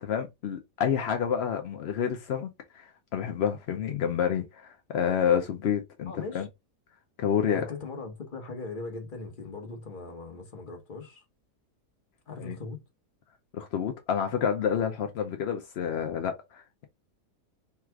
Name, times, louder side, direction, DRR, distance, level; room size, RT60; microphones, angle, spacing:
voice 1, 0.0-6.5 7.2-7.7 12.4-12.6 13.5-16.8, left 8 dB, 70° left, 0.6 m, -29 dB
voice 2, 6.1-6.5 7.5-11.2 12.3-12.8, left 3 dB, 35° left, 1.2 m, -39 dB
3.5 x 2.4 x 4.5 m
omnidirectional pair, 1.8 m